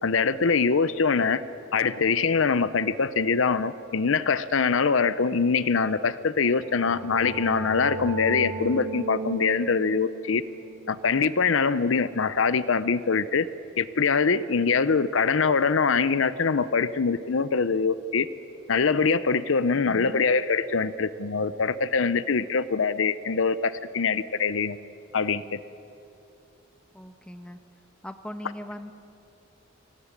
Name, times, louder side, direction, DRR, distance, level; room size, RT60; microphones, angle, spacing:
voice 1, 0.0-1.4 1.7-10.4 10.9-13.5 13.8-18.3 18.7-24.8 25.1-25.4, left 5 dB, 70° left, 15 dB, 0.7 m, -23 dB
sound 1, 6.5-12.1, right 3 dB, 80° right, 1.9 m, -36 dB
voice 2, 19.8-20.2 26.9-27.6 28.0-28.9, equal, 5° left, 7 dB, 1.1 m, -39 dB
25.0 x 17.0 x 9.8 m, 2.8 s
head